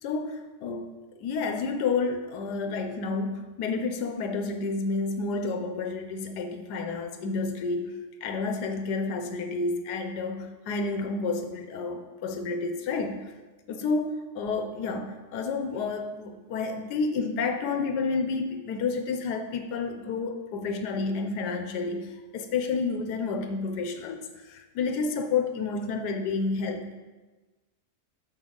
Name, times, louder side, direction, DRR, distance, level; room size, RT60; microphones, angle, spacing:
voice 1, 0.0-13.2 13.7-27.0, left 4 dB, 80° left, 6 dB, 1.3 m, -30 dB
6.4 x 6.1 x 3.8 m, 1.2 s
omnidirectional pair, 1.8 m